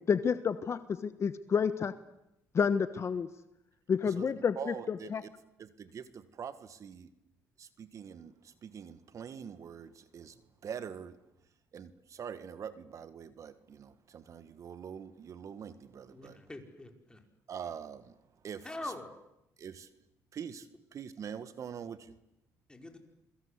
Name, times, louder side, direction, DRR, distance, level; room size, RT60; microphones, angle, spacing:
voice 1, 0.1-1.9 2.5-3.3 3.9-5.2, left 6 dB, 45° left, 12 dB, 1.2 m, -30 dB
voice 2, 4.6-5.1 5.6-7.1 7.6-8.3 8.6-10.3 10.6-11.2 11.7-16.4 17.5-18.1 18.4-18.7 19.6-19.9 20.3-20.7 20.9-22.0, right 7 dB, 55° right, 12 dB, 1.7 m, -44 dB
voice 3, 16.1-17.2 18.6-19.1 22.7-23.0, left 2 dB, 15° left, 4 dB, 5.1 m, -43 dB
28.0 x 22.5 x 8.2 m, 0.84 s
supercardioid pair, 80°, 7 cm